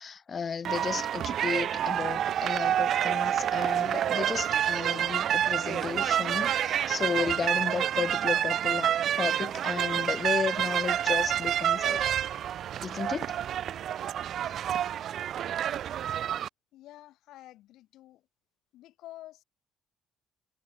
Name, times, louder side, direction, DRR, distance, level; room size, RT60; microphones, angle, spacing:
voice 1, 0.0-12.2 12.8-13.4, left 6 dB, 30° left, 0.6 m, -33 dB
sound 1, 0.6-16.5, right 10 dB, 55° right, 0.4 m, -28 dB
voice 2, 16.7-18.3 18.7-19.4, left 15 dB, 80° left, 4.6 m, -49 dB
cardioid pair, 150°, 0 cm